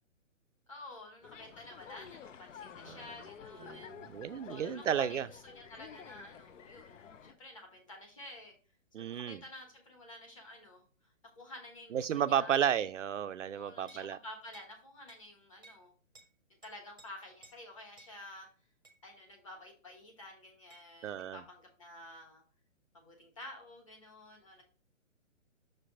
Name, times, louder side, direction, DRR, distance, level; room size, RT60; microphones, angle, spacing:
voice 1, 0.7-3.9 4.5-6.9 7.2-8.5 9.0-10.8 11.4-12.6 13.5-15.9 16.6-18.5 19.0-22.4 22.9-24.6, left 1 dB, 25° left, 2 dB, 1.1 m, -50 dB
sound 1, 1.2-7.3, left 8 dB, 70° left, 0.6 m, -50 dB
voice 2, 3.7-5.3 8.9-9.4 11.9-14.2 21.0-21.4, right 9 dB, 65° right, 11 dB, 0.5 m, -33 dB
sound 2, 13.9-14.1 14.5-14.7 15.1-15.2 15.6-15.8 16.1-16.3 16.6-17.1 17.4-17.6 18.0-18.1 18.8-19.0 20.7-20.9, right 3 dB, 15° right, 0.7 m, -57 dB
6.2 x 3.3 x 5.0 m, 0.37 s
hypercardioid pair, 175°, 39 cm